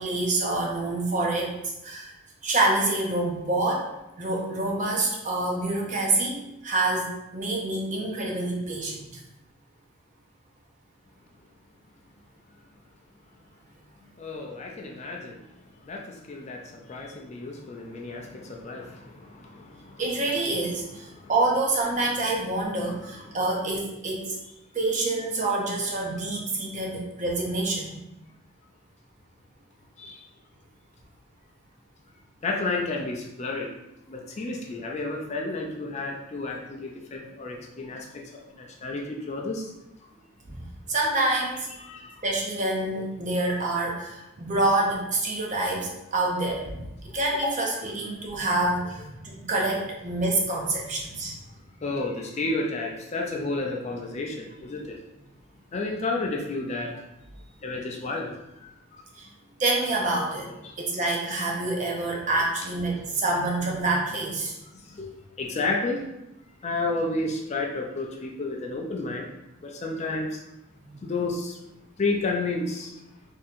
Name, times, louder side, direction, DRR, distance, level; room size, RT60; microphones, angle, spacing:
voice 1, 0.0-1.5 1.8-2.1 2.4-3.9 4.2-9.2 20.0-24.4 24.7-28.0 40.5-40.6 40.9-41.7 42.2-46.8 47.1-51.3 59.2-59.3 59.6-60.5 60.8-64.6 70.9-71.0, right 2 dB, 35° right, -1 dB, 0.6 m, -27 dB
voice 2, 14.2-15.3 15.9-16.0 16.3-16.6 16.9-19.0 30.0-30.2 32.4-33.7 34.1-38.0 38.8-39.0 39.3-39.6 41.9-42.1 51.8-54.9 55.7-56.9 57.6-58.3 65.0-65.1 65.4-66.0 66.6-69.3 69.8-70.3 71.0-71.5 72.0-72.9, left 3 dB, 30° left, 0 dB, 0.4 m, -30 dB
4.3 x 2.7 x 2.5 m, 0.92 s
head